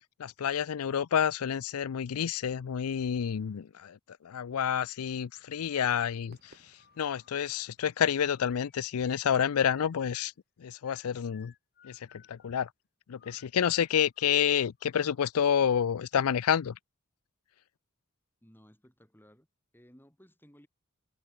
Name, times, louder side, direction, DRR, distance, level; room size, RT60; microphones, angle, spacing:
voice 1, 0.2-10.3 10.6-11.5 11.8-12.7 13.1-16.8, left 8 dB, 90° left, 0.4 m, -29 dB
Fireworks, 5.4-10.4, right 2 dB, 45° right, 4.6 m, -65 dB
sound 1, 6.8-7.6 8.2-10.3 10.8-12.7 13.2-15.0, left 9 dB, 45° left, 2.9 m, -60 dB
voice 2, 18.4-19.5 19.7-20.7, equal, 10° left, 7.6 m, -58 dB
head